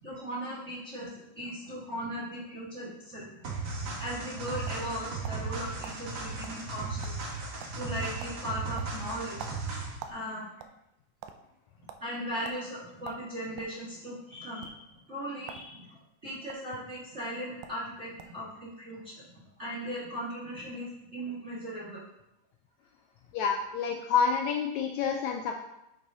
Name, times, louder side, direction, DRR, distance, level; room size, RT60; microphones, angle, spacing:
voice 1, 0.0-3.3 3.8-7.1 7.7-10.4 12.0-22.0, equal, 35° right, -7 dB, 1.1 m, -38 dB
sound 1, 3.4-10.0, right 3 dB, 55° right, 1.4 m, -36 dB
sound 2, 4.1-5.5 5.8-6.0 6.4-6.6 6.9-7.4 7.6-7.9 8.2-8.4 8.8-10.2 10.5-11.4 11.9-12.0 12.4-12.6 13.0-13.8 14.5-14.7 15.4-15.7 16.0-16.6 17.3-17.4 17.6-17.8 18.2-18.4, right 8 dB, 80° right, 1.9 m, -45 dB
voice 2, 23.3-25.6, left 6 dB, 80° left, 3 dB, 1.7 m, -28 dB
8.8 x 6.1 x 2.7 m, 0.86 s
omnidirectional pair, 3.6 m